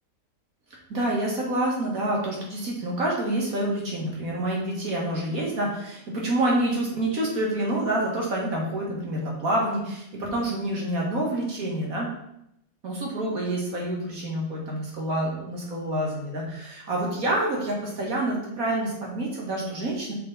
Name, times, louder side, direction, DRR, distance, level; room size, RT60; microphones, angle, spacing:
voice 1, 0.9-12.1 12.8-20.1, right 1 dB, 55° right, -3 dB, 2.1 m, -27 dB
6.6 x 4.6 x 4.0 m, 0.78 s
omnidirectional pair, 1.9 m